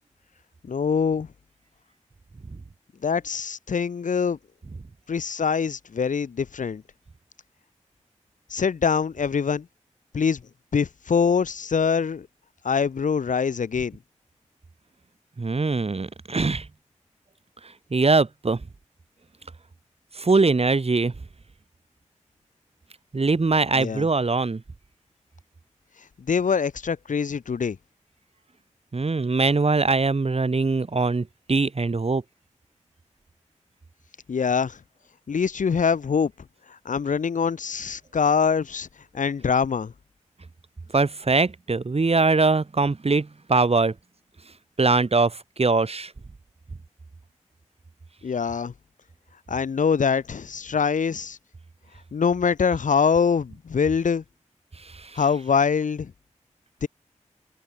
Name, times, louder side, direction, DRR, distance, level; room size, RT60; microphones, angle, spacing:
voice 1, 0.6-1.3 3.0-4.4 5.1-6.8 8.5-9.7 10.1-10.4 10.7-12.3 12.6-14.0 23.7-24.1 26.3-27.8 34.3-34.8 35.3-36.3 36.8-38.9 39.1-39.9 48.2-48.7 49.5-51.4 52.1-54.2 55.1-56.1 56.8-56.9, left 6 dB, 85° left, 2.8 m, -24 dB
voice 2, 15.4-16.7 17.6-18.6 20.2-21.1 23.1-24.6 28.9-32.2 40.9-43.9 44.8-46.1 54.8-55.2, right 3 dB, 50° right, 5.6 m, -22 dB
cardioid pair, 50°, 13 cm